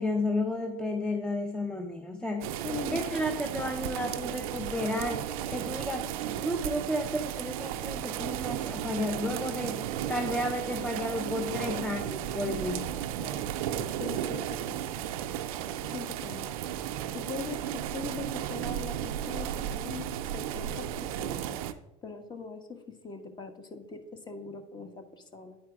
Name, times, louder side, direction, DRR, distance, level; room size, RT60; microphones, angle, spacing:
voice 1, 0.0-2.6 2.9-6.1 6.4-12.9, left 1 dB, 5° left, 3 dB, 0.7 m, -32 dB
sound 1, 2.4-21.7, right 11 dB, 80° right, 0.5 m, -34 dB
voice 2, 2.6-3.4 11.6-11.9 12.7-12.8 13.2-13.4 13.8-14.8 15.8-16.5 17.1-20.1 20.3-21.6 22.0-25.6, left 4 dB, 25° left, 6 dB, 1.2 m, -41 dB
9.6 x 4.6 x 4.8 m, 0.92 s
supercardioid pair, 100°, 18 cm